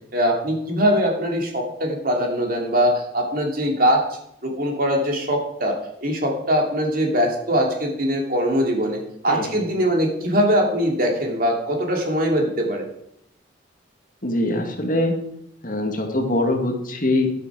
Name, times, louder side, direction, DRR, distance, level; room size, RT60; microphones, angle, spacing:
voice 1, 0.1-4.0 4.4-12.9, equal, 50° right, 1 dB, 2.8 m, -22 dB
voice 2, 14.2-15.2 15.6-17.3, left 1 dB, 45° left, 3 dB, 2.0 m, -23 dB
12.0 x 8.6 x 6.1 m, 0.74 s
head